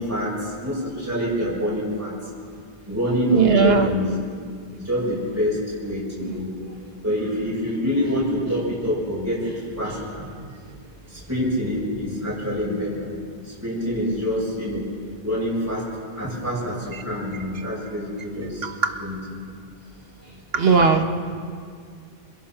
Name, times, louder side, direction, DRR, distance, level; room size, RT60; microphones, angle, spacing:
voice 1, 0.0-2.2 2.9-4.1 4.8-13.2 13.4-14.9 15.2-15.9 16.1-18.7 19.0-19.2 20.2-20.4, equal, 15° right, -7 dB, 6.9 m, -26 dB
voice 2, 3.3-3.9 6.2-6.4 16.9-17.0 18.6-18.7 20.5-21.0, right 4 dB, 65° right, 6 dB, 1.8 m, -18 dB
27.5 x 21.0 x 6.1 m, 2.2 s
omnidirectional pair, 1.1 m